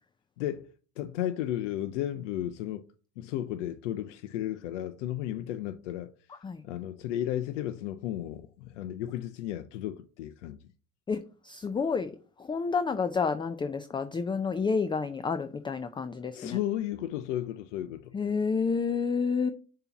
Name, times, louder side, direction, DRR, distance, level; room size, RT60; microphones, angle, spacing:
voice 1, 0.4-0.7 1.0-2.9 3.2-6.1 6.6-10.6 16.3-18.2, left 12 dB, 85° left, 0.5 m, -34 dB
voice 2, 11.1-12.1 12.4-16.6 18.1-19.5, left 5 dB, 15° left, 0.4 m, -29 dB
6.8 x 2.9 x 5.7 m
hypercardioid pair, 85°, 35 cm